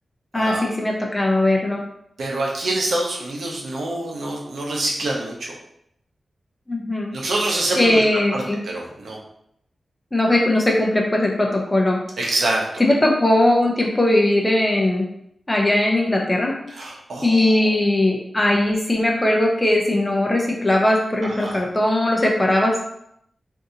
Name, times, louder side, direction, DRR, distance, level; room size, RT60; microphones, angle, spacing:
voice 1, 0.3-1.8 6.7-7.2 7.8-8.6 10.1-12.0 12.8-15.0 15.5-16.6 17.2-22.8, left 1 dB, 15° left, 0 dB, 0.5 m, -19 dB
voice 2, 2.2-5.5 7.1-8.0 8.3-9.2 12.2-12.7 16.7-17.7 21.2-21.6, right 2 dB, 75° right, -1 dB, 0.8 m, -26 dB
3.8 x 2.6 x 2.7 m, 0.74 s
wide cardioid pair, 145°, 0 cm